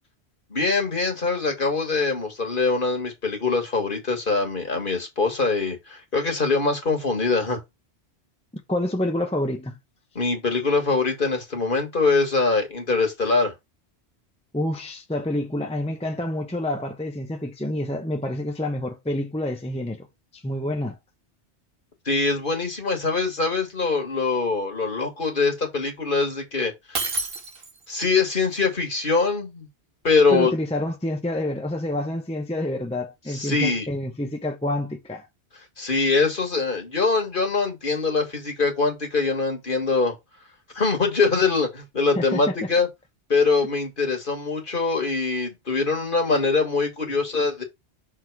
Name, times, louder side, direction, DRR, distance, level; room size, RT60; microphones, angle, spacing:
voice 1, 0.5-7.6 10.2-13.5 22.1-27.2 27.9-29.7 30.0-30.5 33.3-33.9 35.8-40.1 40.8-42.9 43.3-47.6, left 4 dB, 50° left, 2.0 m, -23 dB
voice 2, 8.7-9.8 14.5-20.1 20.3-21.0 30.3-35.3 42.2-42.7, left 1 dB, 5° left, 0.8 m, -28 dB
Shatter, 26.9-28.0, right 3 dB, 55° right, 1.4 m, -29 dB
6.3 x 3.8 x 4.6 m
omnidirectional pair, 1.1 m